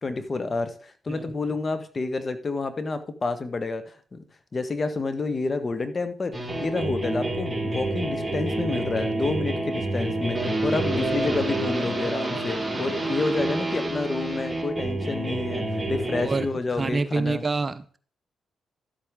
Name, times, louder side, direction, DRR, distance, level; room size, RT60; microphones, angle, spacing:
voice 1, 0.0-4.2 4.5-17.4, left 3 dB, 40° left, 10 dB, 1.5 m, -29 dB
sound 1, 6.3-16.5, right 2 dB, 15° right, 4.3 m, -28 dB
voice 2, 16.1-16.5 16.8-18.0, right 3 dB, 40° right, 14 dB, 0.7 m, -27 dB
12.5 x 8.0 x 3.7 m, 0.44 s
hypercardioid pair, 45°, 0 cm